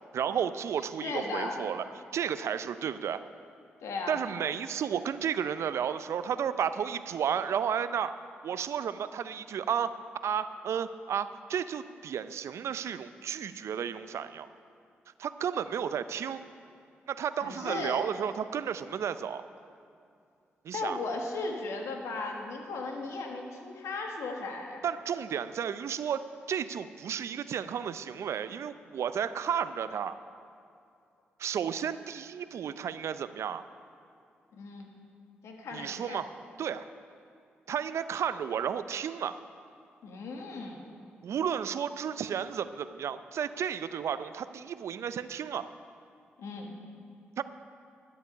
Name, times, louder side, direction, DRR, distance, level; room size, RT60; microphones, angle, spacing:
voice 1, 0.1-1.8 2.1-3.2 4.1-8.2 8.4-14.5 15.2-16.4 17.1-19.4 20.6-21.0 24.8-26.2 26.5-30.1 31.4-33.6 35.7-36.3 36.6-36.8 37.7-39.4 41.2-45.7 47.4-47.5, right 8 dB, 65° right, 13 dB, 0.5 m, -32 dB
voice 2, 1.0-1.7 3.8-4.2 17.4-18.0 20.7-24.8 34.5-34.9 35.4-36.2 40.0-40.8 46.4-46.7, left 3 dB, 70° left, 2 dB, 1.6 m, -36 dB
12.5 x 10.5 x 5.4 m, 2.4 s
hypercardioid pair, 40°, 5 cm